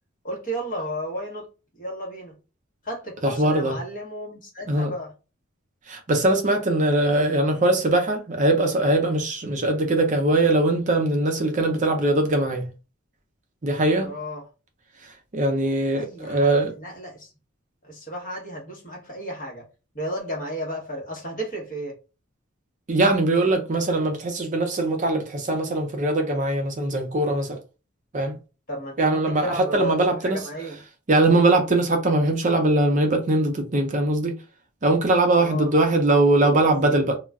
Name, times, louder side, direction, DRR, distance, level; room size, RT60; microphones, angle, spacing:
voice 1, 0.2-1.4 1.8-2.3 2.8-5.1 14.0-14.4 16.0-17.3 17.8-19.6 19.9-21.9 28.7-30.0 30.2-30.8 35.4-35.7, right 1 dB, 40° left, 1.0 m, -33 dB
voice 2, 3.2-3.8 4.7-4.9 5.9-12.7 13.6-14.1 15.3-16.7 22.9-27.6 28.1-28.3 29.0-30.4 31.1-34.3 34.8-37.2, right 2 dB, 35° right, 0.5 m, -21 dB
2.3 x 2.1 x 3.5 m
head